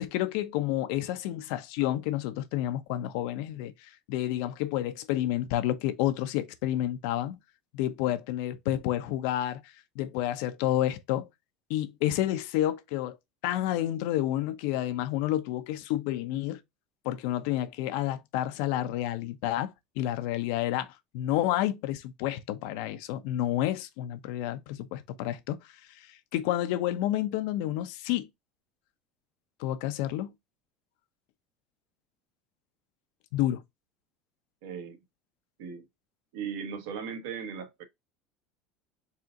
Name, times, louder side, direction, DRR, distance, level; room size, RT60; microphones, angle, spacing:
voice 1, 0.0-7.4 7.7-9.6 10.0-11.3 11.7-13.2 13.4-16.6 17.0-20.9 21.1-25.6 26.0-28.3 29.6-30.3 33.3-33.6, left 13 dB, 70° left, 0.6 m, -30 dB
voice 2, 34.6-35.0 35.6-35.8 36.3-37.8, right 7 dB, 85° right, 1.2 m, -37 dB
4.3 x 2.5 x 3.6 m
cardioid pair, 155°, 0 cm